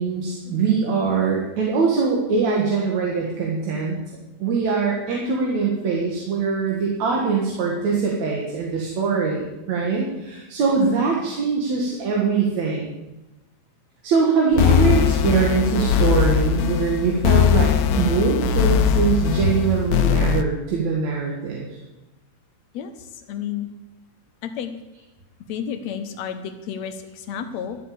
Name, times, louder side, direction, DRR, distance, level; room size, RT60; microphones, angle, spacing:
voice 1, 0.0-4.0 4.4-12.9 14.0-21.7, right 5 dB, 70° right, -2 dB, 3.0 m, -22 dB
sound 1, 14.5-20.4, left 7 dB, 90° left, 2.2 m, -20 dB
voice 2, 22.7-23.7 24.4-24.7 25.5-27.8, left 8 dB, 70° left, 8 dB, 2.2 m, -31 dB
13.0 x 8.3 x 7.0 m, 1.0 s
omnidirectional pair, 3.3 m